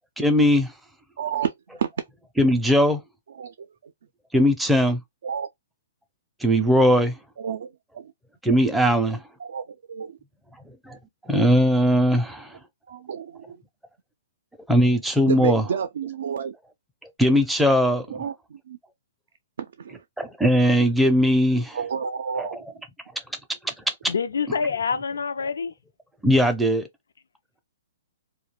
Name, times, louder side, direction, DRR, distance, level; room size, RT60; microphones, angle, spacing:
voice 1, 0.2-0.7 2.4-3.0 4.3-5.0 6.4-7.2 8.4-9.2 10.9-11.0 11.3-12.6 14.7-15.6 17.2-18.2 20.2-21.8 22.4-22.5 23.6-23.7 24.0-24.1 26.2-26.8, equal, 5° right, 0.5 m, -19 dB
voice 2, 1.2-1.9 3.3-3.5 3.8-3.9 5.2-5.5 7.4-8.1 9.4-10.2 12.9-13.6 15.3-16.6 18.1-18.8 19.6-20.0 21.7-22.8, right 7 dB, 70° right, 0.4 m, -30 dB
voice 3, 24.1-25.7, left 5 dB, 90° left, 0.4 m, -26 dB
2.3 x 2.2 x 3.0 m
hypercardioid pair, 145°, 0 cm